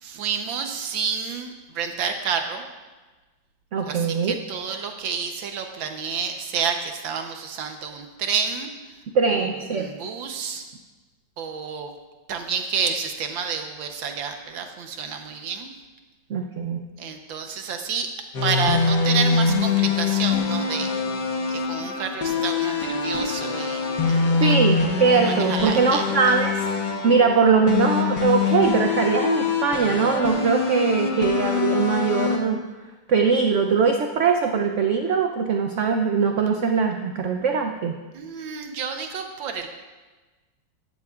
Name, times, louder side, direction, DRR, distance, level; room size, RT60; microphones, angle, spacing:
voice 1, 0.0-2.6 3.9-8.7 9.3-10.6 11.4-11.9 12.3-15.7 17.0-18.1 18.4-20.9 21.5-24.6 25.2-26.1 38.1-39.7, right 6 dB, 90° right, 5 dB, 1.7 m, -29 dB
voice 2, 3.7-4.3 9.1-9.9 16.3-16.8 24.4-26.5 27.0-32.6 33.1-37.9, right 5 dB, 70° right, 4 dB, 0.7 m, -21 dB
sound 1, 18.3-32.4, left 5 dB, 65° left, 1.7 m, -24 dB
13.5 x 12.0 x 2.4 m, 1.2 s
omnidirectional pair, 2.0 m